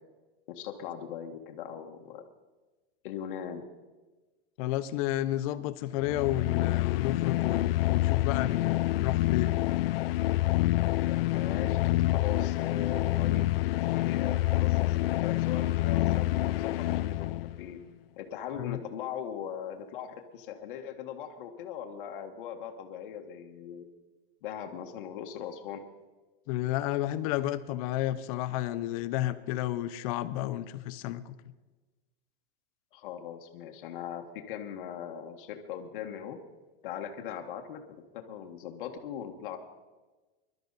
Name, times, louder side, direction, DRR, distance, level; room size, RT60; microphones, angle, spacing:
voice 1, 0.5-2.2 3.0-3.6 11.1-17.8 18.2-23.8 24.4-25.8 32.9-36.4 36.8-37.8 38.1-39.6, left 9 dB, 60° left, 3 dB, 1.6 m, -40 dB
voice 2, 4.6-9.5 18.6-18.8 26.5-31.4, left 14 dB, 40° left, 13 dB, 0.7 m, -31 dB
sound 1, 6.0-17.6, left 16 dB, 80° left, 0.5 m, -27 dB
22.0 x 12.5 x 4.1 m, 1.2 s
supercardioid pair, 160°, 29 cm